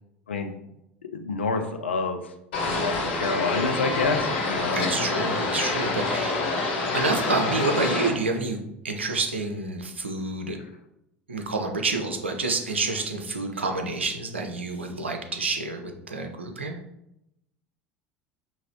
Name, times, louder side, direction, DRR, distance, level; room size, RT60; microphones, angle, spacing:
voice 1, 1.1-2.2 2.7-4.8, left 4 dB, 80° left, 5 dB, 0.4 m, -28 dB
sound 1, 2.5-8.1, left 3 dB, 65° left, 1.0 m, -27 dB
voice 2, 4.7-6.4 6.9-10.6 11.3-16.8, right 3 dB, 85° right, 4 dB, 0.5 m, -28 dB
4.7 x 2.9 x 2.8 m, 0.84 s
figure-of-eight pair, 70°, 6 cm